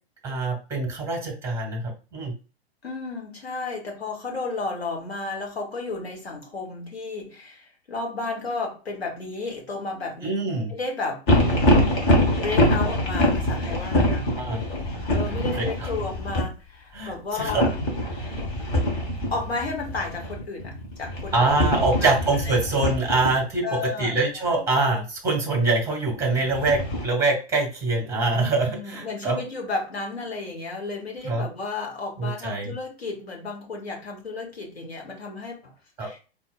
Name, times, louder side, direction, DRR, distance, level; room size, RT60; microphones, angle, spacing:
voice 1, 0.2-2.3 10.2-10.7 14.3-14.6 15.5-15.9 16.9-17.6 21.3-29.4 31.2-31.5 32.2-32.7 36.0-36.1, right 3 dB, 10° right, 1 dB, 1.3 m, -24 dB
voice 2, 2.8-10.3 10.7-11.2 12.3-14.3 15.1-17.7 19.3-22.1 22.4-22.5 23.6-24.5 28.4-35.7 36.0-36.2, left 3 dB, 70° left, 1 dB, 1.2 m, -33 dB
sound 1, 11.3-16.5 17.4-23.3 26.2-27.0, left 1 dB, 30° left, 1.2 m, -24 dB
3.8 x 2.6 x 2.4 m, 0.35 s
figure-of-eight pair, 105°, 32 cm